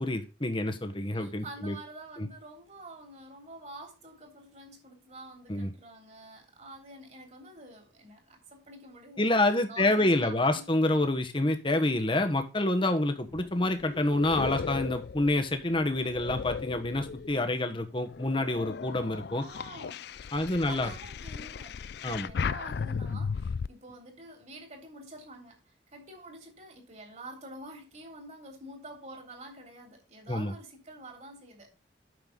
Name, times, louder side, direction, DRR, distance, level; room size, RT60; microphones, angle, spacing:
voice 1, 0.0-1.7 2.2-2.3 5.5-5.7 9.2-19.4 20.3-20.9 22.0-22.3 30.3-30.5, left 2 dB, 25° left, 1.2 m, -27 dB
voice 2, 1.1-10.6 19.1-20.2 20.6-21.8 22.1-31.7, right 2 dB, 35° right, 3.2 m, -48 dB
sound 1, 13.3-17.5 18.0-23.7, left 5 dB, 55° left, 0.4 m, -36 dB
9.3 x 6.9 x 3.9 m
head